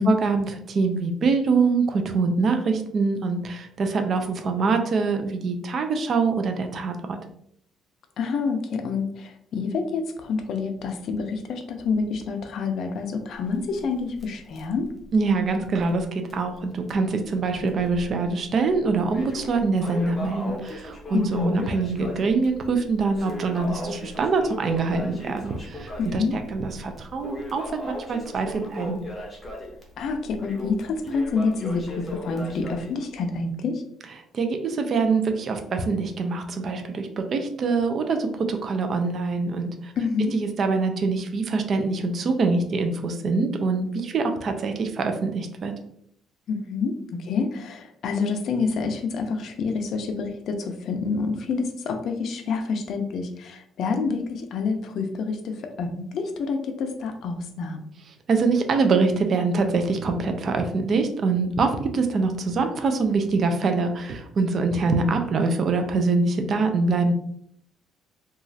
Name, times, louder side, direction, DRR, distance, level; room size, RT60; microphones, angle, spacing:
voice 1, 0.1-7.2 15.1-29.0 34.3-39.9 40.3-45.7 58.3-67.1, right 4 dB, 40° right, 5 dB, 0.3 m, -24 dB
voice 2, 8.2-14.9 21.1-21.7 26.0-26.4 30.0-33.8 40.0-40.3 46.5-57.8, left 4 dB, 55° left, 6 dB, 0.4 m, -27 dB
Crackle, 13.4-16.1 16.3-16.4 16.9-17.0 17.7-18.3 18.7-32.9, left 1 dB, 15° left, 0.7 m, -37 dB
2.9 x 2.3 x 2.6 m, 0.70 s
cardioid pair, 150°, 0 cm